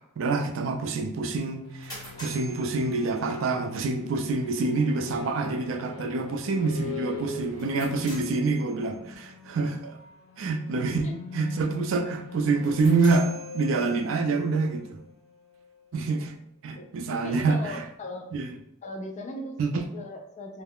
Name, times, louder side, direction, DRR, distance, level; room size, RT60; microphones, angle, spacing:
voice 1, 0.2-9.9 10.4-15.0 15.9-16.4 16.6-17.8 18.3-18.5 19.6-19.9, right 3 dB, 70° right, 5 dB, 0.4 m, -27 dB
sound 1, 1.2-15.8, left 4 dB, 90° left, 0.6 m, -42 dB
sound 2, 1.4-3.6 7.4-9.1 12.5-14.3, right 1 dB, 20° left, 1.2 m, -46 dB
voice 2, 16.8-18.3 18.8-20.6, left 1 dB, 35° left, 4 dB, 0.4 m, -39 dB
2.3 x 2.0 x 3.5 m, 0.78 s
head